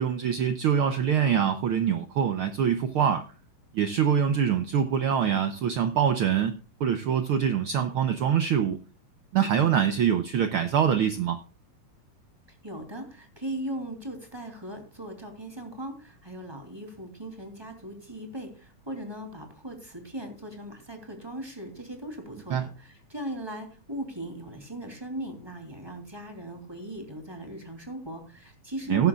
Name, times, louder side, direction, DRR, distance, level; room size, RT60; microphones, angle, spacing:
voice 1, 0.0-3.2 3.7-8.8 9.3-11.4 22.5-22.7 28.9-29.1, right 8 dB, 85° right, 9 dB, 1.2 m, -24 dB
voice 2, 12.5-29.1, right 1 dB, 10° right, 4 dB, 2.8 m, -38 dB
16.5 x 11.5 x 2.4 m, 0.36 s
omnidirectional pair, 3.5 m